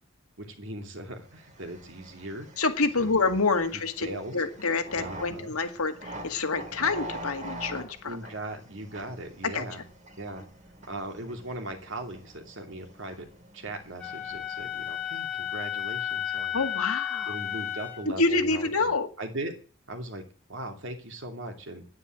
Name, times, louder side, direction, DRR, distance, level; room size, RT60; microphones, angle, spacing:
voice 1, 0.4-2.6 3.0-3.2 3.7-4.4 4.9-5.5 8.0-9.8 10.2-10.4 10.9-13.3 13.5-16.6 17.3-18.9 19.2-19.5 19.9-20.2 20.5-21.9, right 1 dB, 60° right, 4 dB, 2.9 m, -39 dB
sound 1, 1.2-15.1, right 1 dB, 35° right, 2.6 m, -45 dB
voice 2, 2.6-4.1 4.3-8.2 9.4-9.6 16.5-17.4 18.1-19.1, left 3 dB, 85° left, 7 dB, 2.0 m, -27 dB
Wind instrument woodwind instrument, 14.0-18.1, left 11 dB, 5° left, 4.1 m, -33 dB
10.0 x 9.5 x 8.9 m, 0.40 s
head